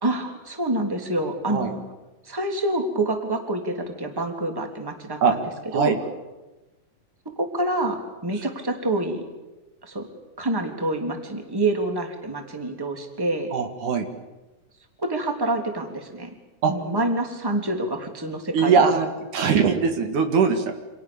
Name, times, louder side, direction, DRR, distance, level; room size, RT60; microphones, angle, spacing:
voice 1, 0.0-1.8 2.2-5.4 5.7-6.0 7.4-9.2 9.8-10.1 10.4-13.5 15.0-16.3 16.7-18.8, right 2 dB, 5° right, 4 dB, 3.0 m, -27 dB
voice 2, 13.5-14.1 16.6-16.7 18.5-20.8, right 5 dB, 65° right, 6 dB, 3.4 m, -21 dB
29.5 x 27.0 x 7.2 m, 1.1 s
omnidirectional pair, 3.9 m